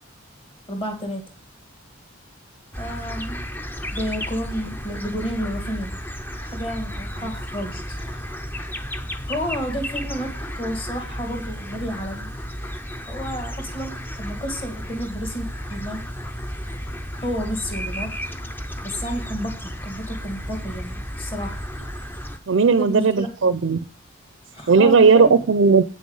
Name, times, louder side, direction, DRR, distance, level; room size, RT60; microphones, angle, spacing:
voice 1, 0.7-1.2 2.8-3.5 3.9-6.0 6.4-8.0 9.3-12.3 13.1-16.0 17.2-18.1 18.8-21.6 22.7-23.3 24.5-25.3, equal, 25° left, 4 dB, 2.0 m, -31 dB
sound 1, 2.7-22.4, equal, 10° left, 0.6 m, -33 dB
voice 2, 22.5-23.8 24.7-25.8, right 5 dB, 60° right, 14 dB, 0.5 m, -16 dB
8.7 x 6.3 x 5.5 m, 0.36 s
head